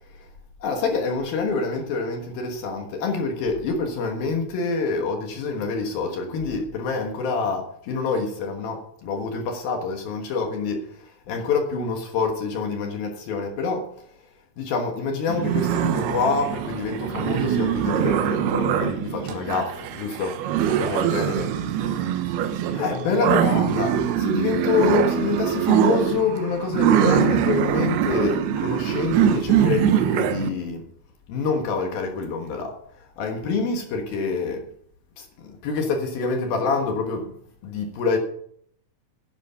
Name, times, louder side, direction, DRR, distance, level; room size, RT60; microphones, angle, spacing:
voice 1, 0.6-10.8 11.3-13.9 14.6-20.4 20.7-21.5 22.0-22.2 22.7-30.9 31.3-32.8 33.2-34.6 35.2-37.3 37.6-38.2, left 4 dB, 65° left, 2.9 m, -26 dB
sound 1, 15.3-30.5, right 9 dB, 75° right, 2.6 m, -23 dB
11.0 x 10.0 x 5.7 m
omnidirectional pair, 5.3 m